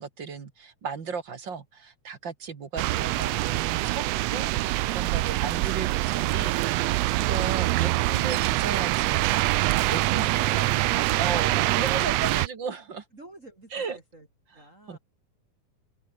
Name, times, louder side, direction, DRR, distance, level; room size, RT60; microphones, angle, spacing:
voice 1, 0.0-9.5 9.9-13.0 13.7-14.0 14.9-15.0, right 5 dB, 40° right, 2.4 m, -35 dB
sound 1, 2.8-12.5, right 18 dB, 85° right, 1.4 m, -25 dB
voice 2, 13.1-14.3 14.5-15.0, right 1 dB, 25° right, 3.9 m, -49 dB
omnidirectional pair, 3.6 m